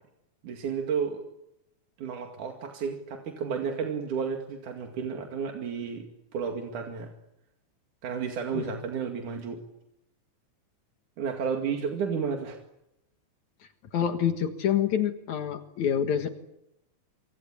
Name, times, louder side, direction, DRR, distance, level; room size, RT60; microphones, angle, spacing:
voice 1, 0.4-1.2 2.0-6.1 6.3-7.1 8.0-9.6 11.2-12.6, right 6 dB, 85° right, 3 dB, 3.7 m, -32 dB
voice 2, 13.9-16.3, left 9 dB, 75° left, 7 dB, 2.9 m, -27 dB
27.5 x 24.5 x 8.7 m, 0.83 s
omnidirectional pair, 3.4 m